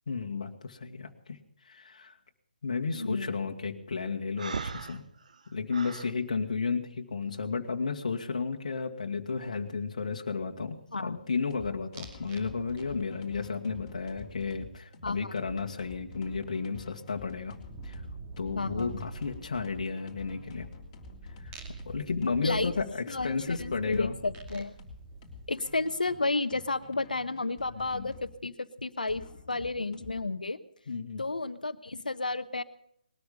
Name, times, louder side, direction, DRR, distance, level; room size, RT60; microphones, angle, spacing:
voice 1, 0.1-1.4 1.6-2.2 2.6-5.0 5.5-17.6 17.8-18.0 18.4-20.7 21.4-21.5 21.9-24.2 27.9-28.1 30.9-31.2, left 4 dB, 55° left, 3 dB, 1.8 m, -33 dB
voice 2, 2.9-3.4 10.9-11.2 15.0-15.3 18.6-18.9 22.4-22.7 23.1-24.7 25.5-30.6 31.2-32.6, left 3 dB, 75° left, 12 dB, 1.2 m, -32 dB
Breathing, 4.4-6.1, right 4 dB, 55° right, 1.0 m, -38 dB
sound 1, 11.3-28.3 29.1-30.2, left 5 dB, 20° left, 3.3 m, -49 dB
sound 2, 11.9-12.5 12.8-13.2 15.7-15.8 16.0-26.1, right 3 dB, 20° right, 2.5 m, -46 dB
20.0 x 13.0 x 5.3 m, 0.72 s
figure-of-eight pair, 145°, 5 cm